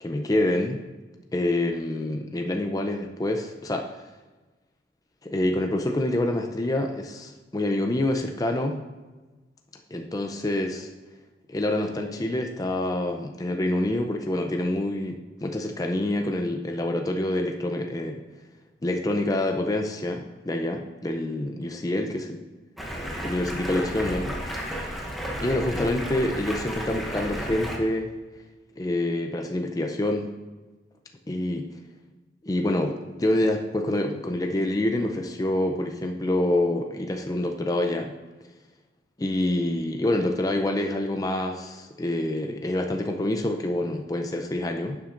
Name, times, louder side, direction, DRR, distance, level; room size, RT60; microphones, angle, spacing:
voice 1, 0.0-0.8 1.3-3.9 5.2-8.8 9.9-10.9 11.5-18.2 18.8-22.4 23.2-24.4 25.4-28.1 28.8-30.3 31.3-31.7 32.4-38.2 39.2-45.0, left 1 dB, 20° left, 4 dB, 0.4 m, -27 dB
Stream, 22.8-27.8, equal, ahead, 0.8 m, -32 dB
11.0 x 7.2 x 2.5 m, 1.2 s
head